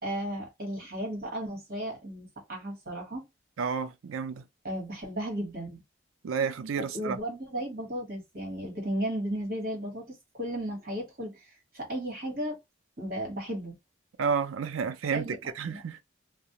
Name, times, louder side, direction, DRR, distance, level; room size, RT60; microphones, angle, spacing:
voice 1, 0.0-3.2 4.6-5.8 6.8-12.6 13.0-13.8 15.1-15.8, right 1 dB, 50° right, 1.2 m, -35 dB
voice 2, 3.6-4.4 6.2-7.2 14.2-15.3 15.6-16.0, right 6 dB, 90° right, 0.4 m, -30 dB
2.4 x 2.0 x 2.8 m
head